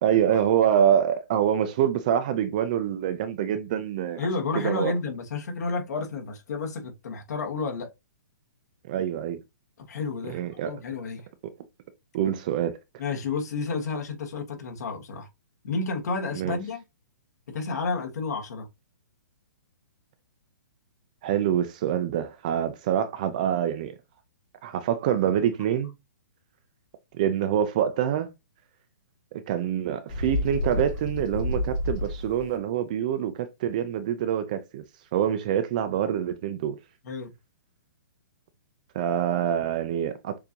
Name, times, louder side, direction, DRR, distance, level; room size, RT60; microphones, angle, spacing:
voice 1, 0.0-4.3 4.5-4.9 8.9-9.4 10.3-10.8 12.1-12.8 16.4-16.6 21.2-23.9 24.6-25.9 27.1-28.3 29.3-34.8 35.1-36.8 38.9-40.4, right 9 dB, 25° right, 0.4 m, -25 dB
voice 2, 4.2-7.9 9.8-11.3 13.0-15.3 15.6-16.8 17.5-18.7 37.0-37.3, left 4 dB, 60° left, 1.6 m, -31 dB
Bird, 30.1-32.6, left 1 dB, 25° left, 0.9 m, -29 dB
6.7 x 2.6 x 2.8 m
hypercardioid pair, 175°, 10 cm